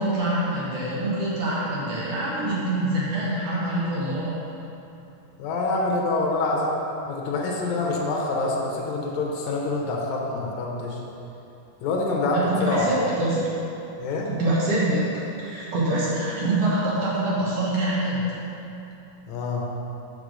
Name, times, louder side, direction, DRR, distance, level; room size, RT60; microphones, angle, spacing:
voice 1, 0.0-4.5 12.3-13.4 14.3-15.0 15.4-18.3, right 1 dB, 60° right, -7 dB, 1.6 m, -25 dB
voice 2, 5.4-6.8 7.1-11.0 11.8-13.1 14.0-14.3 19.3-19.7, left 2 dB, 75° left, -2 dB, 1.7 m, -26 dB
5.8 x 5.2 x 6.2 m, 2.9 s
omnidirectional pair, 4.4 m